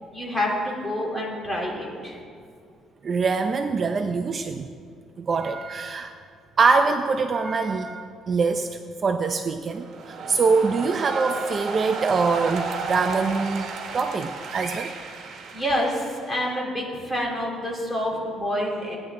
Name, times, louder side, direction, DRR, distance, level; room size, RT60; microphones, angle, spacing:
voice 1, 0.1-2.2 15.5-19.0, equal, 10° left, -4 dB, 3.3 m, -27 dB
voice 2, 3.0-4.7 5.2-6.1 6.6-8.7 9.0-9.9 10.3-13.7 13.9-14.9, right 4 dB, 35° right, 6 dB, 0.5 m, -23 dB
sound 1, 9.7-16.6, right 5 dB, 60° right, 1.6 m, -34 dB
18.0 x 10.0 x 3.7 m, 2.2 s
cardioid pair, 135°, 0 cm